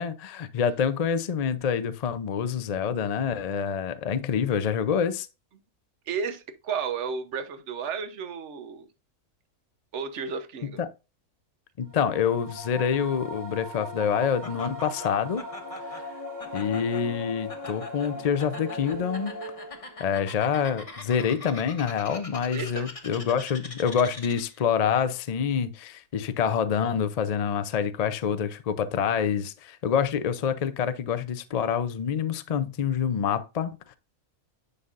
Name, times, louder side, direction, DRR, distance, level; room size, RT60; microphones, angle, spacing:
voice 1, 0.0-5.3 10.8-10.9 11.8-15.4 15.9-16.0 16.5-19.3 20.0-34.0, left 7 dB, 75° left, 0.3 m, -27 dB
voice 2, 6.1-8.9 9.9-10.8 22.5-22.9, right 6 dB, 55° right, 1.2 m, -33 dB
sound 1, 11.9-20.1, left 1 dB, 15° right, 1.3 m, -39 dB
Laughter, 14.4-24.7, left 3 dB, 25° left, 1.0 m, -43 dB
10.0 x 5.6 x 2.5 m
omnidirectional pair, 1.6 m